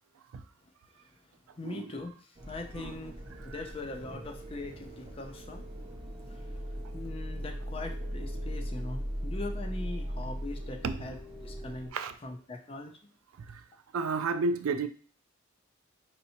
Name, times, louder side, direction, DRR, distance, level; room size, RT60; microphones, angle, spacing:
voice 1, 1.6-3.1 3.4-5.7 6.3-6.5 6.9-11.2 11.4-11.9 12.2-13.0, left 2 dB, 25° left, 0.4 m, -41 dB
sound 1, 2.4-11.9, equal, 25° right, 0.6 m, -39 dB
voice 2, 13.9-14.9, right 4 dB, 85° right, 0.4 m, -31 dB
4.3 x 2.7 x 2.8 m
head